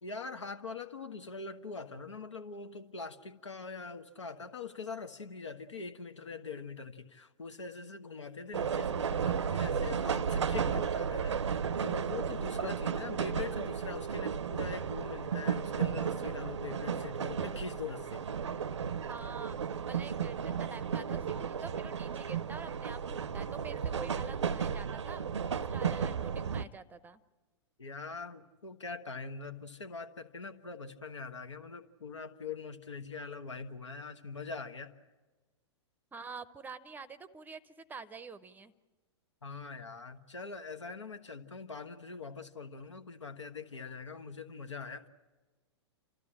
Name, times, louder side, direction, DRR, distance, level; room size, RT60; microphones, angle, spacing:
voice 1, 0.0-18.3 27.8-34.9 39.4-45.1, left 4 dB, 80° left, 8 dB, 1.3 m, -43 dB
sound 1, 8.5-26.6, right 7 dB, 75° right, 0.6 m, -34 dB
voice 2, 19.1-27.2 36.1-38.7, right 5 dB, 10° right, 16 dB, 0.7 m, -47 dB
29.5 x 13.5 x 8.8 m, 1.3 s
figure-of-eight pair, 105°, 15 cm